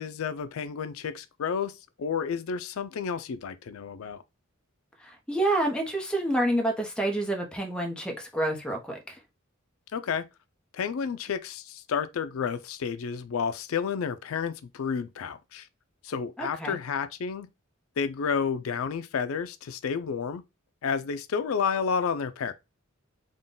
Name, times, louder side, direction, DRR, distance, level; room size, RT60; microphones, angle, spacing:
voice 1, 0.0-4.2 9.9-10.3 10.7-15.7 16.0-17.5 18.0-20.4 20.8-22.5, left 6 dB, 85° left, 0.4 m, -31 dB
voice 2, 5.0-9.2 16.4-16.8, right 1 dB, 5° left, 0.7 m, -28 dB
3.7 x 2.2 x 3.7 m
head